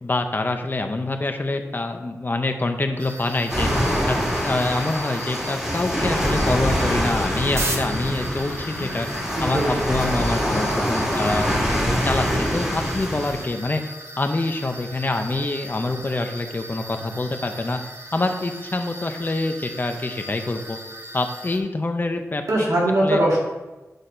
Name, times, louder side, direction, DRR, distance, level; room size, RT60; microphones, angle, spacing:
voice 1, 0.0-3.7 4.1-4.2 4.4-9.1 9.4-13.8 14.2-17.8 18.1-20.8 21.1-22.4 23.0-23.2, left 2 dB, 35° left, 6 dB, 0.7 m, -26 dB
sound 1, 3.0-21.6, right 1 dB, 55° right, 1.1 m, -37 dB
sound 2, 3.5-13.4, equal, 10° right, 2.3 m, -24 dB
voice 2, 9.4-9.9 22.5-23.4, right 1 dB, 85° right, -3 dB, 2.1 m, -21 dB
8.0 x 4.2 x 5.2 m, 1.1 s
wide cardioid pair, 80°, 6 cm